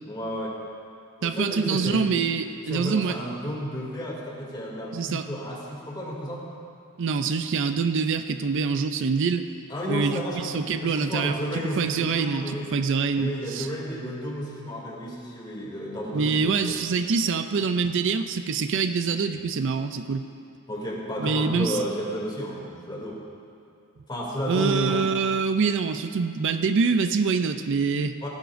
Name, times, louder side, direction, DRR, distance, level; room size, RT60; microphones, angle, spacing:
voice 1, 0.1-0.6 1.2-2.1 2.7-6.4 9.7-12.7 13.1-16.8 20.7-23.2 24.1-25.1 28.2-28.3, equal, 20° left, -4 dB, 2.6 m, -32 dB
voice 2, 1.2-3.2 4.9-5.3 7.0-9.5 9.9-11.4 11.8-13.7 16.1-20.2 21.2-21.8 24.5-28.1, right 5 dB, 60° right, 9 dB, 0.4 m, -25 dB
17.0 x 14.0 x 2.6 m, 2.5 s
head